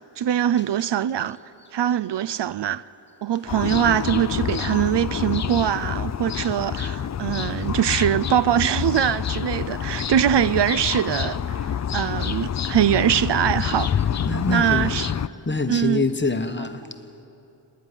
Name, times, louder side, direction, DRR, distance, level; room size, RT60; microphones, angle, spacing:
voice 1, 0.0-1.4 1.7-2.8 3.2-13.9 14.5-15.1 15.7-16.0, right 10 dB, 70° right, 0.5 m, -22 dB
sound 1, 3.5-15.3, left 8 dB, 40° left, 0.4 m, -27 dB
voice 2, 14.3-15.0 15.5-17.2, left 3 dB, 25° left, 1.1 m, -25 dB
29.5 x 10.5 x 9.9 m
wide cardioid pair, 105°, 45 cm